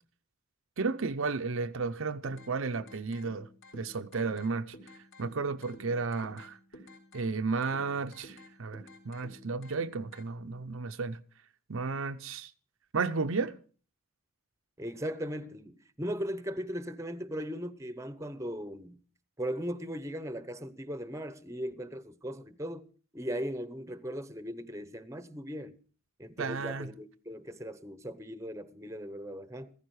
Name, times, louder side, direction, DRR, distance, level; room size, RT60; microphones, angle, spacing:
voice 1, 0.8-4.7 5.2-6.6 7.1-11.2 11.7-12.5 12.9-13.6 26.4-26.9, right 4 dB, 65° right, 0.6 m, -33 dB
sound 1, 2.2-10.2, equal, 60° left, 4.0 m, -53 dB
voice 2, 14.8-19.0 19.4-22.9 23.1-25.8 26.2-29.7, equal, 15° right, 0.8 m, -38 dB
15.0 x 14.5 x 4.7 m
head